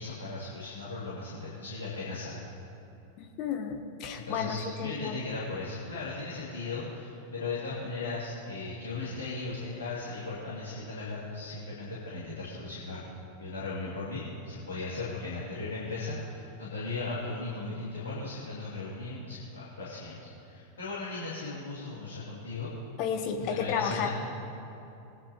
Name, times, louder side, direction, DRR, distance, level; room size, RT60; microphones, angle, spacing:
voice 1, 0.0-2.4 4.1-13.1 13.4-22.7 23.5-24.1, left 3 dB, 70° left, -8 dB, 2.8 m, -37 dB
voice 2, 3.2-5.2 23.0-24.1, left 7 dB, 40° left, 5 dB, 0.9 m, -32 dB
21.5 x 9.7 x 3.1 m, 2.8 s
figure-of-eight pair, 90°, 0 cm